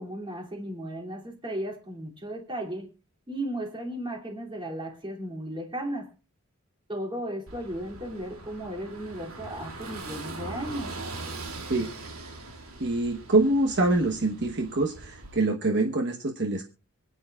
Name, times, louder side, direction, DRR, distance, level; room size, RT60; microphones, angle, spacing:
voice 1, 0.0-2.9 3.3-6.1 6.9-10.9, right 1 dB, 20° right, 1 dB, 2.8 m, -35 dB
Car passing by / Engine, 7.5-15.4, right 3 dB, 75° right, 2.8 m, -41 dB
voice 2, 12.8-16.7, right 2 dB, 50° right, 3 dB, 1.2 m, -25 dB
25.0 x 9.3 x 2.4 m, 0.34 s
head